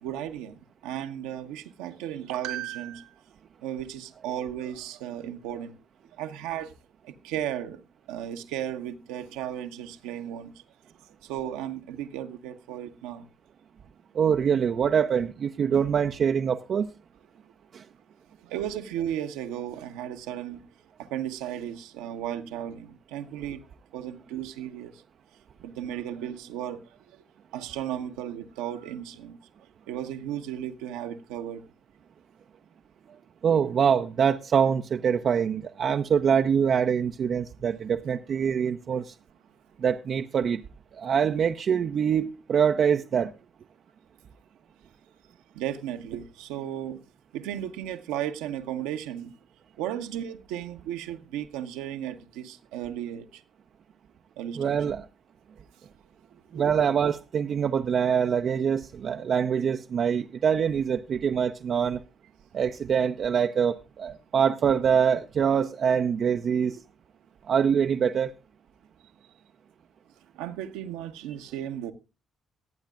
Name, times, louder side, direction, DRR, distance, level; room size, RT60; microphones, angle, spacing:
voice 1, 0.0-3.1 3.6-5.7 6.2-6.7 7.0-7.8 8.1-10.5 11.2-13.3 18.4-20.6 21.0-23.6 23.9-24.9 25.6-26.8 27.5-29.4 29.9-31.6 45.5-47.0 47.3-49.3 49.8-53.4 54.4-55.0 56.5-56.6 70.4-71.9, right 11 dB, 75° right, 0.9 m, -35 dB
voice 2, 14.1-16.9 17.7-17.8 33.4-39.1 39.8-40.6 40.9-43.3 54.6-55.0 56.5-62.0 62.5-66.8 67.5-68.3, right 7 dB, 55° right, 0.5 m, -24 dB
22.5 x 8.9 x 2.4 m
hypercardioid pair, 45°, 0 cm